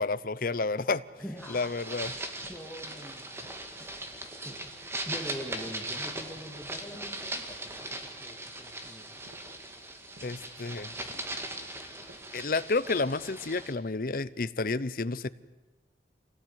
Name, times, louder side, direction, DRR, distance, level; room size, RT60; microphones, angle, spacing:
voice 1, 0.0-1.0 1.5-2.1 10.2-10.9 12.3-15.3, left 3 dB, 50° left, 16 dB, 0.8 m, -30 dB
voice 2, 1.2-1.7 2.2-4.0 4.4-9.2, equal, 5° left, -1 dB, 2.4 m, -44 dB
sound 1, 1.4-13.7, right 1 dB, 15° right, 2.1 m, -39 dB
sound 2, 2.4-2.8 3.4-4.1 4.6-5.1 5.7-6.3 6.9-7.6 9.2-9.6 10.1-10.4 11.0-11.4 12.0-12.4 13.0-13.4, right 1 dB, 65° right, 3.2 m, -58 dB
26.5 x 18.0 x 9.5 m, 1.2 s
head